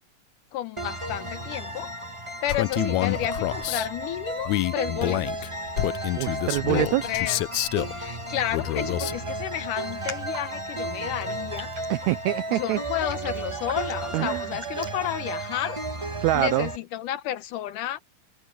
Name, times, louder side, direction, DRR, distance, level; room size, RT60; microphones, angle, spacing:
voice 1, 0.5-1.9 2.4-5.5 6.7-7.4 7.9-11.7 12.5-15.8 16.3-18.0, left 12 dB, 75° left, 2.5 m, -31 dB
sound 1, 0.8-16.8, right 2 dB, 35° right, 0.5 m, -34 dB
Male speech man speaking, 2.5-3.9 4.4-8.0 8.5-9.2, left 18 dB, 90° left, 1.7 m, -27 dB
voice 2, 6.2-7.0 11.9-12.8 14.1-14.5 16.2-16.7, right 16 dB, 85° right, 1.6 m, -25 dB
Raindrop, 9.8-16.0, right 3 dB, 55° right, 6.7 m, -46 dB
omnidirectional pair, 3.9 m